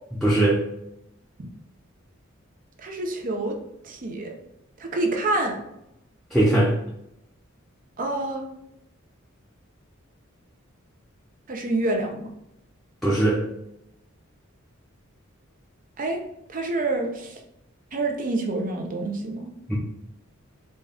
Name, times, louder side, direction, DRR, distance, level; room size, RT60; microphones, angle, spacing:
voice 1, 0.2-0.6 6.3-6.7 13.0-13.4 19.7-19.8, right 1 dB, ahead, -7 dB, 0.6 m, -20 dB
voice 2, 2.8-3.5 3.8-4.3 4.8-5.6 8.0-8.4 11.5-12.3 16.0-16.2 16.5-17.4 17.9-19.5, right 2 dB, 40° right, 2 dB, 0.6 m, -27 dB
4.0 x 2.3 x 3.3 m, 0.81 s
head